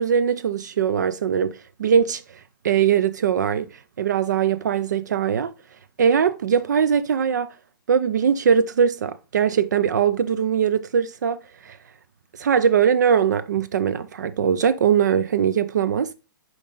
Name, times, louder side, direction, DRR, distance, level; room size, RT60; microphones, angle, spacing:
voice 1, 0.0-5.5 6.0-7.5 7.9-11.8 12.3-16.1, right 7 dB, 55° right, 0.4 m, -21 dB
7.3 x 4.6 x 3.9 m
hypercardioid pair, 180°, 11 cm